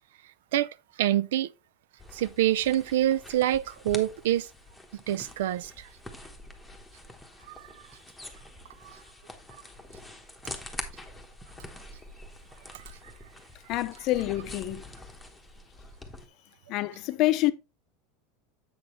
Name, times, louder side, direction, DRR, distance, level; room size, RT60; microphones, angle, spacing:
voice 1, 0.5-1.5 2.1-4.5 4.9-5.9 7.5-7.8 8.8-9.0 12.7-13.0, right 13 dB, 90° right, 0.4 m, -27 dB
sound 1, 2.0-16.3, left 1 dB, 5° left, 1.1 m, -45 dB
voice 2, 13.7-14.8 16.7-17.5, left 16 dB, 40° left, 0.6 m, -27 dB
7.9 x 6.2 x 3.1 m
supercardioid pair, 155°, 0 cm